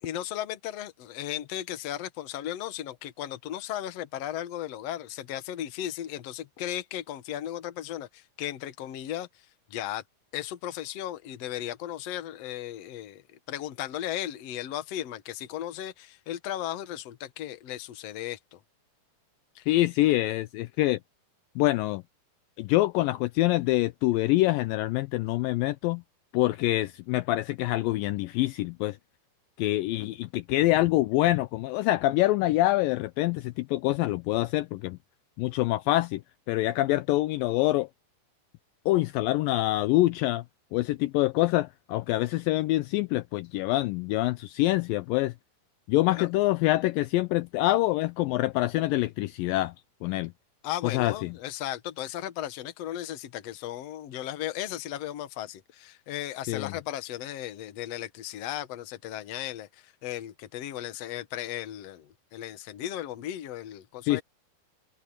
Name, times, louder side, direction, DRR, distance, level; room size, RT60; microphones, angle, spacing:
voice 1, 0.0-9.3 9.7-10.0 10.3-13.2 13.5-18.6 19.6-19.7 46.1-46.3 50.6-64.2, left 12 dB, 60° left, 1.9 m, -36 dB
voice 2, 19.7-21.0 21.6-22.0 22.6-26.0 26.3-29.0 29.6-35.0 35.4-36.2 36.5-37.9 38.9-40.4 40.7-45.3 45.9-49.7 50.0-50.3 50.9-51.3 56.5-56.7 64.1-64.2, left 17 dB, 80° left, 2.1 m, -25 dB
omnidirectional pair, 4.3 m